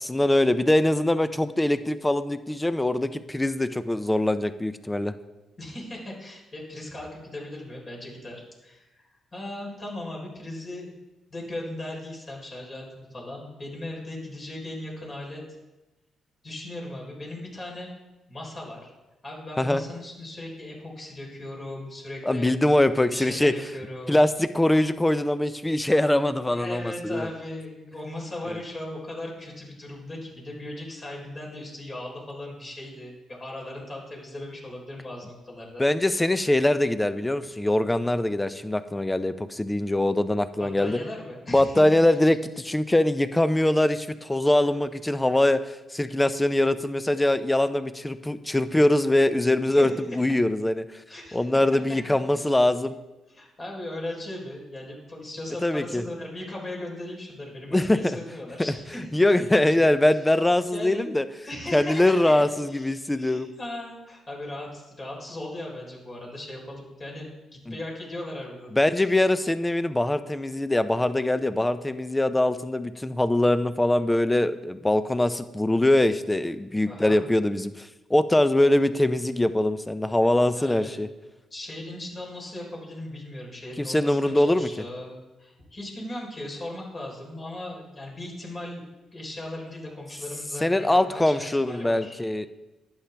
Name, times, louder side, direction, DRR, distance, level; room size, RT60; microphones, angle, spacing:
voice 1, 0.0-5.1 19.6-19.8 22.2-23.5 24.1-27.3 28.5-28.6 35.8-41.0 41.5-50.8 51.3-52.9 55.6-56.0 57.7-58.2 59.1-61.2 61.7-63.5 67.7-67.8 68.7-81.1 83.8-84.7 90.6-92.5, left 1 dB, 15° left, 12 dB, 0.6 m, -23 dB
voice 2, 5.6-10.9 11.3-15.4 16.4-17.9 18.3-18.9 19.2-22.7 23.1-24.2 26.4-35.9 40.6-41.8 42.1-42.2 49.7-49.9 51.1-51.6 52.3-52.5 53.3-59.8 60.7-61.0 61.4-69.2 76.9-77.2 80.6-81.0 81.5-88.8 89.1-92.2, left 1 dB, 40° left, -2 dB, 3.9 m, -38 dB
11.0 x 8.6 x 3.4 m, 1.1 s
supercardioid pair, 65°, 0 cm